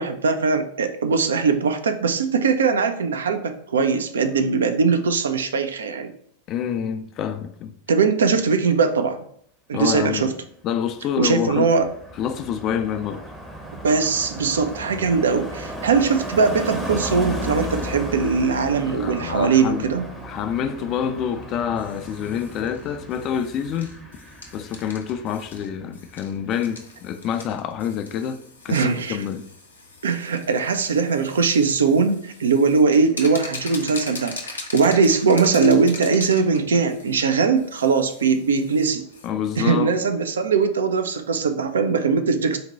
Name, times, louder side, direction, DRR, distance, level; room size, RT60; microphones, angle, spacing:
voice 1, 0.0-6.1 7.9-9.2 9.7-10.3 11.2-11.9 13.8-20.0 28.7-29.2 30.0-39.1 39.6-42.6, right 5 dB, 65° right, 0.4 m, -20 dB
voice 2, 6.5-7.7 9.7-10.3 10.6-11.7 12.2-13.2 18.8-19.9 20.2-23.9 24.5-29.5 39.2-40.0, left 8 dB, 35° left, 0.3 m, -27 dB
Car passing by, 11.0-25.8 26.1-26.4, equal, 5° right, 0.7 m, -35 dB
sound 1, 21.8-39.3, left 3 dB, 75° left, 0.6 m, -41 dB
4.0 x 2.2 x 4.0 m
figure-of-eight pair, 90°, 0 cm